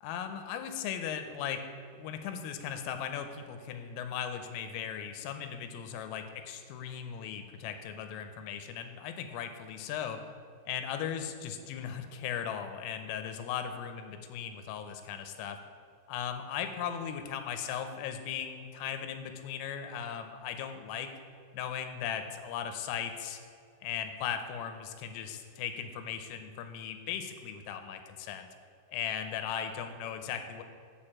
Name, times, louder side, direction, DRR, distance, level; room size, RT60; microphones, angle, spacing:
voice 1, 0.0-1.7 2.0-10.2 10.7-15.6 16.1-21.2 21.5-23.4 23.8-28.5 28.9-30.6, left 8 dB, 90° left, 7 dB, 3.4 m, -37 dB
10.5 x 4.7 x 7.3 m, 2.3 s
omnidirectional pair, 5.8 m